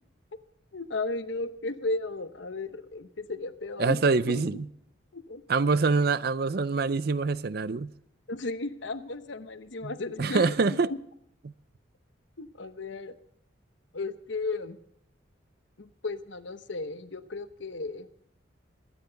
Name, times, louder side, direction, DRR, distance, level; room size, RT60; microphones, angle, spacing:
voice 1, 0.7-4.6 5.1-5.6 8.3-11.0 12.4-13.2 13.9-14.8 15.8-18.1, left 3 dB, 65° left, 0.9 m, -35 dB
voice 2, 3.8-4.6 5.5-7.9 9.8-9.9 10.2-10.9, right 4 dB, 50° right, 0.5 m, -25 dB
22.0 x 9.8 x 3.9 m
head